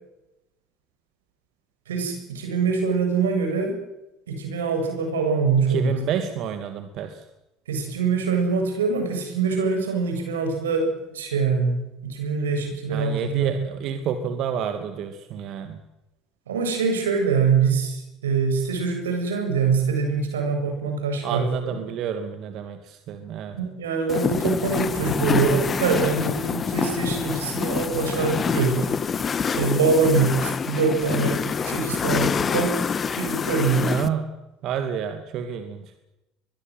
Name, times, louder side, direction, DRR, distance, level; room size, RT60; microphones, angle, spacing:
voice 1, 1.9-3.8 4.3-5.9 7.7-13.5 16.5-21.4 23.6-28.9 29.5-32.8 33.2-33.9, right 5 dB, 90° right, 4 dB, 7.7 m, -24 dB
voice 2, 5.6-7.3 12.9-15.8 21.2-23.6 33.8-34.3 34.6-36.0, right 7 dB, 60° right, 7 dB, 2.5 m, -29 dB
sound 1, 24.1-34.1, left 6 dB, 35° left, 1.7 m, -26 dB
24.0 x 22.5 x 7.9 m, 0.95 s
hypercardioid pair, 75°, 0 cm